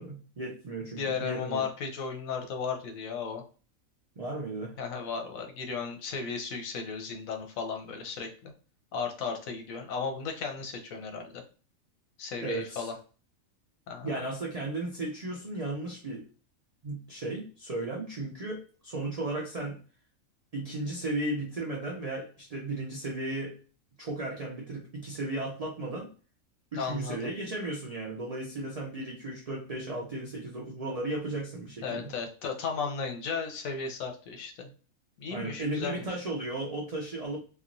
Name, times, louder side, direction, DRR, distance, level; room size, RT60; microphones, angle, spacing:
voice 1, 0.0-1.6 4.2-4.7 12.4-12.9 14.0-16.3 16.8-19.8 20.5-23.6 24.0-26.1 26.7-32.1 35.3-37.4, right 2 dB, 90° right, -2 dB, 0.3 m, -35 dB
voice 2, 1.0-3.4 4.8-8.5 8.9-11.4 12.2-12.9 13.9-14.2 26.7-27.3 31.8-34.7 35.2-36.0, left 5 dB, 80° left, 4 dB, 1.1 m, -35 dB
3.0 x 2.3 x 2.5 m, 0.37 s
omnidirectional pair, 1.4 m